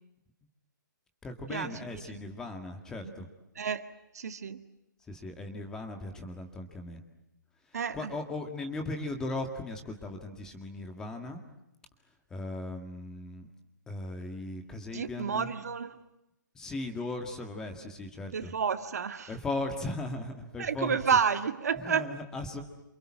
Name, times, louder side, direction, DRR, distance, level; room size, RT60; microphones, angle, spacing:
voice 1, 1.2-3.3 5.1-7.0 7.7-11.4 12.3-13.5 13.9-15.5 16.5-18.5 19.3-21.0 21.7-22.6, left 2 dB, 5° left, 1.9 m, -38 dB
voice 2, 4.2-4.6 7.7-8.0 14.9-15.9 18.3-19.3 20.6-22.1, right 6 dB, 50° right, 1.9 m, -30 dB
29.0 x 27.0 x 7.5 m
hypercardioid pair, 175°, 11 cm